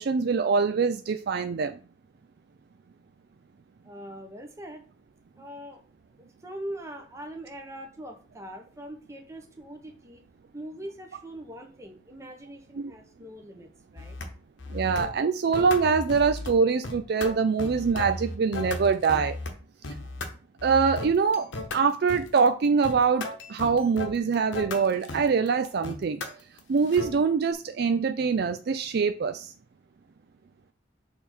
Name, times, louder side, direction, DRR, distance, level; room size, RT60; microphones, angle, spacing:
voice 1, 0.0-1.8 12.8-12.9 14.7-19.4 20.6-21.5 21.7-26.2 26.7-29.5, right 5 dB, 55° right, 9 dB, 0.4 m, -24 dB
voice 2, 3.8-4.8 5.4-5.8 6.2-10.2 10.5-14.2, right 1 dB, 15° right, 3 dB, 1.0 m, -42 dB
sound 1, 14.0-14.3 14.6-15.1 15.5-16.5 16.8-19.5 19.8-20.3 20.6-27.1, left 2 dB, 80° left, 1.0 m, -36 dB
6.5 x 3.5 x 4.4 m, 0.38 s
head